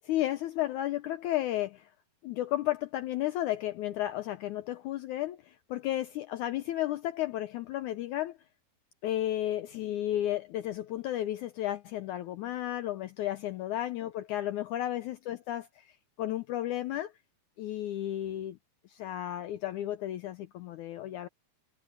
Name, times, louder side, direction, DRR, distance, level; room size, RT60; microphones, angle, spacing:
voice 1, 0.0-1.9 2.2-8.4 9.0-17.1 17.6-18.6 18.9-21.3, left 13 dB, 75° left, 1.8 m, -33 dB
omnidirectional pair, 4.2 m